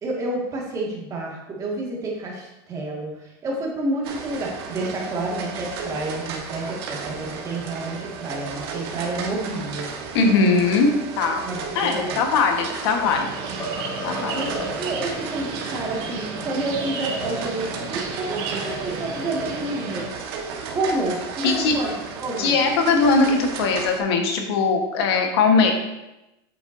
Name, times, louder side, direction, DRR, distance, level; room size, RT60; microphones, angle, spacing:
voice 1, 0.0-9.8 11.4-12.3 14.2-20.1 20.7-22.5, right 2 dB, 25° right, -3 dB, 1.9 m, -29 dB
sound 1, 4.0-24.0, right 5 dB, 75° right, 1.4 m, -34 dB
voice 2, 10.1-11.4 11.7-13.3 14.0-14.3 21.4-21.8 22.4-25.7, left 4 dB, 80° left, 3 dB, 1.3 m, -20 dB
sound 2, 12.1-13.2 13.6-15.0, equal, 20° left, 0.8 m, -34 dB
sound 3, 13.0-20.1, right 3 dB, 60° right, 2.1 m, -33 dB
8.1 x 7.9 x 2.7 m, 0.96 s
supercardioid pair, 155°, 13 cm